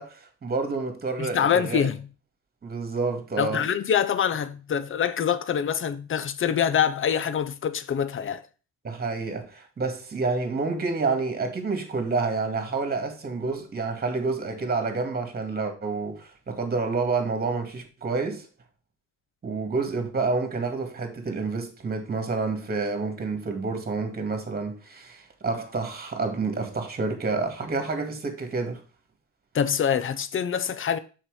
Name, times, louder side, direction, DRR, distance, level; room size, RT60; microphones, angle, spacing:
voice 1, 0.0-1.9 2.6-3.6 8.8-18.5 19.4-28.8, right 4 dB, 30° right, 2.1 m, -29 dB
voice 2, 1.2-2.1 3.4-8.4 29.5-31.0, left 8 dB, 45° left, 0.8 m, -25 dB
6.0 x 4.7 x 4.8 m
cardioid pair, 90°, 30 cm